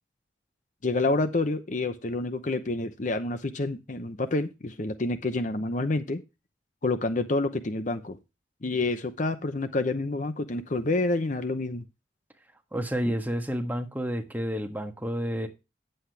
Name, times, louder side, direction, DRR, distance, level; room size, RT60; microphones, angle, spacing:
voice 1, 0.8-6.2 6.8-8.2 8.6-11.8, left 2 dB, 40° left, 0.7 m, -28 dB
voice 2, 12.7-15.5, equal, 10° right, 1.3 m, -30 dB
9.9 x 7.9 x 3.4 m
head